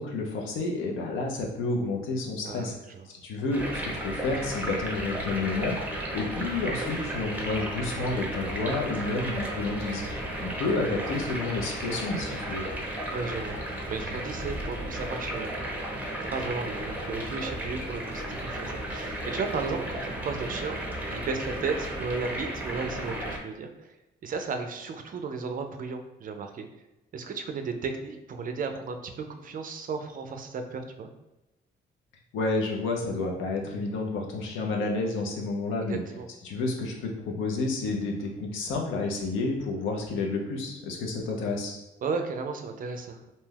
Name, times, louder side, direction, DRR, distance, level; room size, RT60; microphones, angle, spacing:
voice 1, 0.0-2.7 3.1-12.6 32.3-36.0 36.4-41.8, left 3 dB, 85° left, 1 dB, 0.6 m, -30 dB
voice 2, 2.4-3.1 13.1-13.6 13.8-15.5 16.2-20.8 21.1-24.0 24.2-26.7 27.1-31.1 35.9-36.3 42.0-43.3, right 4 dB, 45° right, 6 dB, 0.4 m, -34 dB
sound 1, 3.5-23.4, right 1 dB, 10° right, 0.6 m, -34 dB
2.7 x 2.2 x 3.3 m, 0.98 s
cardioid pair, 90°, 20 cm